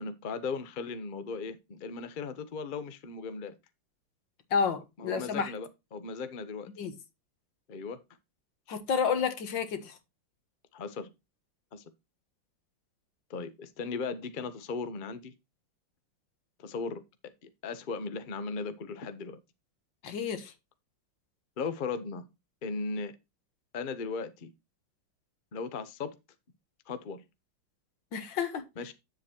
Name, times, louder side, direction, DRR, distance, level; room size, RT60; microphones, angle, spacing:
voice 1, 0.0-3.5 5.0-6.7 7.7-8.0 10.7-11.1 11.7-11.8 13.3-15.3 16.6-17.0 17.4-19.4 21.6-22.3 22.6-23.2 23.7-24.5 25.5-26.1 26.9-27.2 28.8-28.9, left 4 dB, 50° left, 0.5 m, -37 dB
voice 2, 4.5-5.5 6.8-6.9 8.7-10.0 20.0-20.5 28.1-28.6, left 6 dB, 70° left, 1.9 m, -30 dB
9.2 x 7.4 x 2.9 m
omnidirectional pair, 2.2 m